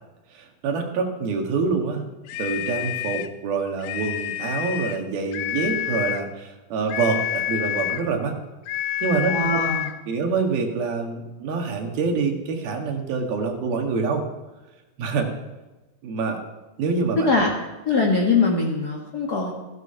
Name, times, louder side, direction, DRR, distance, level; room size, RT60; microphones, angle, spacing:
voice 1, 0.3-2.1 2.4-8.3 9.0-9.6 10.1-14.3 15.0-15.3 16.0-16.4 16.8-17.5, right 4 dB, 80° right, 3 dB, 3.8 m, -26 dB
sound 1, 2.3-3.4 3.8-5.0 5.3-6.3 6.9-8.1 8.7-10.0, left 13 dB, 80° left, 2.5 m, -28 dB
voice 2, 9.2-9.9 17.2-17.5 17.9-19.5, left 3 dB, 35° left, 0 dB, 1.7 m, -22 dB
15.5 x 15.5 x 5.7 m, 1.1 s
omnidirectional pair, 4.3 m